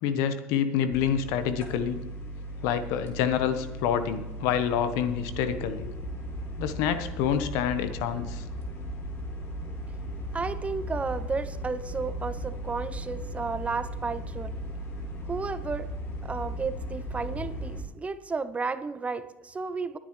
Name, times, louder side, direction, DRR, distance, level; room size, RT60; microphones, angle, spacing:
voice 1, 0.0-2.0 2.6-5.9 6.6-8.4, left 8 dB, 75° left, 11 dB, 1.0 m, -27 dB
sound 1, 0.9-17.8, equal, 50° left, 2.7 m, -37 dB
voice 2, 10.3-14.5 15.2-15.9 16.2-20.0, right 4 dB, 25° right, 13 dB, 0.8 m, -33 dB
19.5 x 10.0 x 3.2 m, 1.0 s
hypercardioid pair, 75°, 5 cm